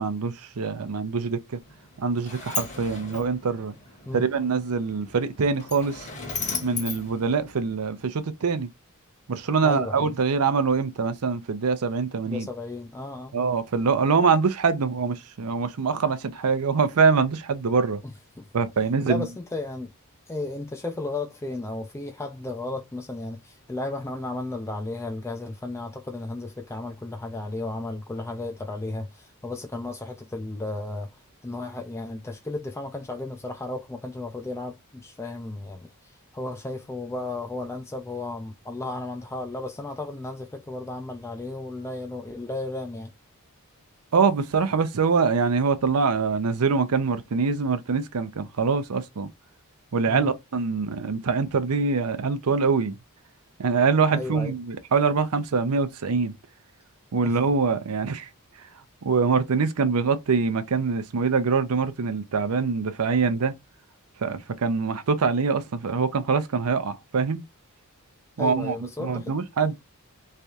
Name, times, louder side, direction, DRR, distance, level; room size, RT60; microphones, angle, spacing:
voice 1, 0.0-1.6 2.0-3.7 4.1-6.1 6.6-8.7 9.3-12.5 13.3-18.0 18.5-19.3 44.1-49.3 49.9-53.0 53.6-56.3 57.1-58.3 58.6-58.7 59.0-63.5 64.2-67.4 68.4-69.7, right 5 dB, 80° right, 0.6 m, -24 dB
Sliding door, 1.6-8.0, left 5 dB, 35° left, 1.2 m, -37 dB
voice 2, 9.6-10.1 12.3-13.4 18.0-18.5 19.1-19.9 20.3-43.1 50.1-50.3 54.1-54.5 57.2-57.4 68.4-69.3, left 2 dB, 10° left, 0.4 m, -34 dB
3.5 x 3.3 x 2.7 m
head